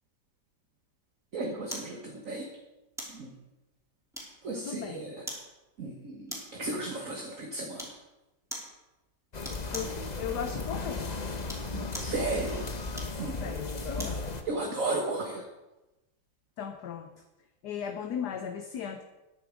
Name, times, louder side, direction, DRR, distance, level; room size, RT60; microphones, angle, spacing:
voice 1, 1.3-2.6 3.1-3.4 4.4-5.2 5.8-8.0 11.7-12.7 13.2-13.5 13.9-14.1 14.4-15.5, right 2 dB, 45° right, 1 dB, 1.6 m, -35 dB
sound 1, 1.7-2.0 3.0-3.2 4.1-4.6 5.3-5.5 6.3-6.6 7.8-8.0 8.5-8.8 9.4-10.0 11.3-12.2 12.9-14.2 14.7-14.8, equal, ahead, 3.1 m, -41 dB
voice 2, 4.5-5.0 9.7-11.1 13.4-14.2 16.6-17.1 17.6-19.0, left 8 dB, 65° left, 6 dB, 1.3 m, -37 dB
sound 2, 9.3-14.4, left 3 dB, 30° left, 0.9 m, -35 dB
14.5 x 10.0 x 5.1 m, 1.0 s
omnidirectional pair, 2.1 m